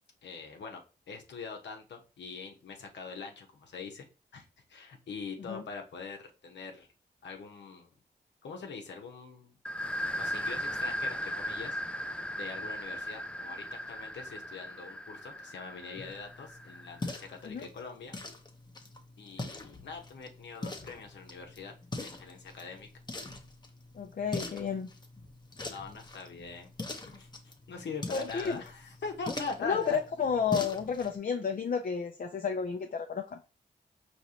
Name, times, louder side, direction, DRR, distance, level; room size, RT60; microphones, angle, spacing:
voice 1, 0.2-4.1 4.3-6.9 7.2-7.9 8.4-9.6 10.2-11.8 12.3-18.1 19.2-22.9 25.6-30.0, left 4 dB, 80° left, 0.9 m, -43 dB
sound 1, 9.6-17.1, equal, 5° left, 0.4 m, -37 dB
sound 2, 15.9-31.2, left 2 dB, 25° left, 0.9 m, -43 dB
voice 2, 23.9-24.9 28.1-28.6 29.6-33.4, left 6 dB, 50° left, 0.6 m, -31 dB
4.8 x 3.1 x 2.8 m
cardioid pair, 50°, 18 cm